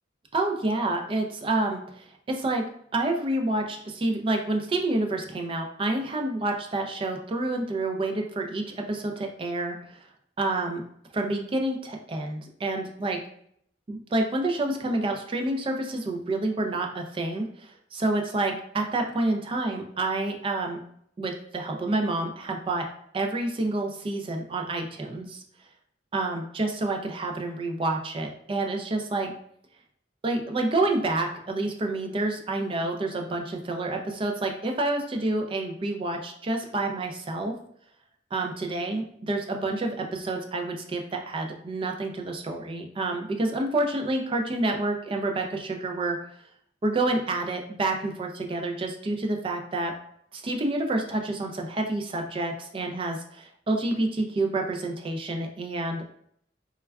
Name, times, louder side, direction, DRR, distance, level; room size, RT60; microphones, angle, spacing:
voice 1, 0.3-2.7 2.9-10.1 10.4-10.8 11.1-13.2 13.9-20.8 21.2-22.9 23.1-25.4 26.1-29.3 30.2-37.6 38.3-46.2 46.8-49.9 50.3-56.1, right 2 dB, 30° right, 3 dB, 0.3 m, -28 dB
3.3 x 2.2 x 2.2 m, 0.69 s
head